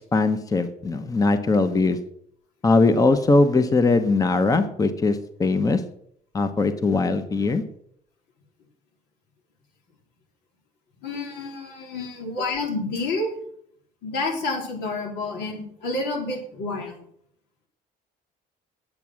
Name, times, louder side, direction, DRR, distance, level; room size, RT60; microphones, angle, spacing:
voice 1, 0.1-2.0 2.6-5.8 6.3-7.6, left 3 dB, 20° left, 10 dB, 0.8 m, -20 dB
voice 2, 11.0-13.3 14.0-17.1, left 2 dB, 85° left, 1 dB, 3.6 m, -29 dB
8.8 x 8.6 x 6.2 m, 0.67 s
cardioid pair, 110°, 17 cm